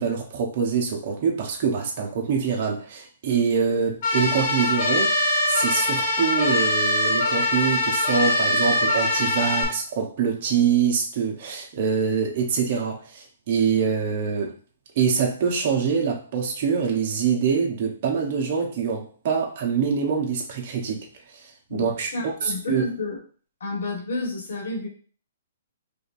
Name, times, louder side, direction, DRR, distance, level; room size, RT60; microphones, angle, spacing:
voice 1, 0.0-14.6 15.0-21.1 21.3-22.8, right 6 dB, 40° right, 0 dB, 0.9 m, -25 dB
sound 1, 4.0-9.6, left 1 dB, 40° left, 1.1 m, -22 dB
voice 2, 22.1-23.2 23.6-24.9, left 2 dB, 80° left, 0 dB, 1.7 m, -30 dB
5.0 x 2.5 x 2.6 m, 0.42 s
hypercardioid pair, 165°, 0 cm